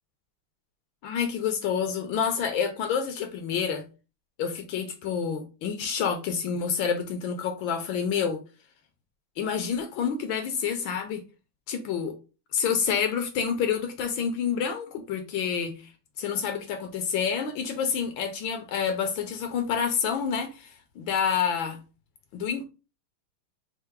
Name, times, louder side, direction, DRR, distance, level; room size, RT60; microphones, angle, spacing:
voice 1, 1.0-3.8 4.4-8.4 9.4-11.2 11.7-12.1 12.5-15.9 16.2-21.8 22.3-22.6, left 7 dB, 75° left, 1.4 m, -28 dB
4.5 x 2.1 x 4.5 m
omnidirectional pair, 2.3 m